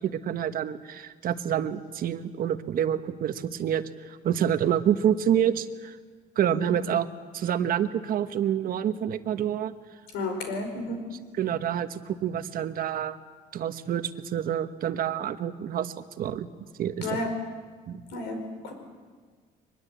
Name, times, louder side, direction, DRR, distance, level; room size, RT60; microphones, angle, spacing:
voice 1, 0.0-6.0 6.4-7.1 7.3-9.7 10.9-11.0 11.4-13.2 13.5-16.5 16.8-17.2 17.9-18.0, right 9 dB, 60° right, 10 dB, 1.2 m, -27 dB
voice 2, 10.1-11.0 17.0-17.3 18.1-18.7, left 2 dB, 85° left, 5 dB, 5.1 m, -32 dB
23.0 x 21.0 x 8.5 m, 1.5 s
cardioid pair, 110°, 17 cm